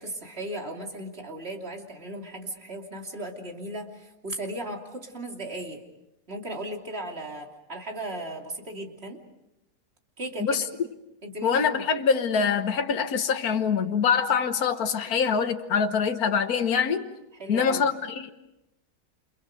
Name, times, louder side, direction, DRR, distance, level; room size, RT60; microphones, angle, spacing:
voice 1, 0.0-5.8 6.3-9.2 10.2-10.7 11.2-11.8 17.3-17.9, right 1 dB, 40° right, 3.2 m, -36 dB
voice 2, 11.4-17.1 17.5-18.3, left 6 dB, 70° left, 1.7 m, -24 dB
29.5 x 27.5 x 5.2 m
omnidirectional pair, 1.7 m